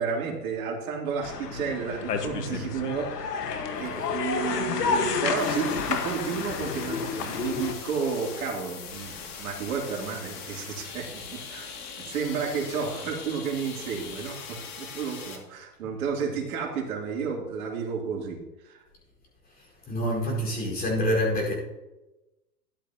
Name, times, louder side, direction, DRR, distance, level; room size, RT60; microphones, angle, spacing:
voice 1, 0.0-3.4 3.8-18.8 20.3-20.4, right 5 dB, 60° right, 2.9 m, -32 dB
sound 1, 1.2-7.7, left 5 dB, 85° left, 1.6 m, -30 dB
sound 2, 5.4-15.4, left 6 dB, 35° left, 2.4 m, -41 dB
voice 2, 19.6-21.5, equal, 20° left, 4.5 m, -27 dB
13.5 x 11.0 x 2.9 m
hypercardioid pair, 130°, 46 cm